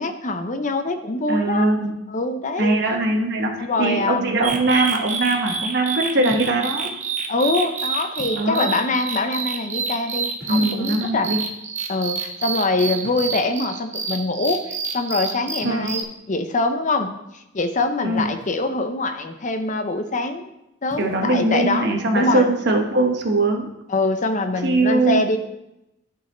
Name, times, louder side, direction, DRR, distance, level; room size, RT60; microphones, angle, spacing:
voice 1, 0.0-1.7 2.1-2.7 3.6-4.4 6.2-6.4 7.3-11.3 11.9-20.5 20.8-22.5 23.9-25.4, left 2 dB, 40° left, 7 dB, 0.6 m, -24 dB
voice 2, 1.3-1.9 2.6-3.5 3.8-6.9 8.3-8.7 10.5-11.4 15.6-15.9 18.0-18.3 21.0-23.7 24.6-25.2, right 2 dB, 55° right, 3 dB, 1.1 m, -21 dB
sound 1, 4.4-16.0, right 5 dB, 35° right, 0.8 m, -29 dB
sound 2, 4.5-4.9 6.3-6.7 8.1-8.8 10.4-11.1 13.0-13.5 15.6-15.9 18.2-18.7 20.8-21.2, equal, 65° left, 2.9 m, -41 dB
12.5 x 4.2 x 3.9 m, 0.88 s
head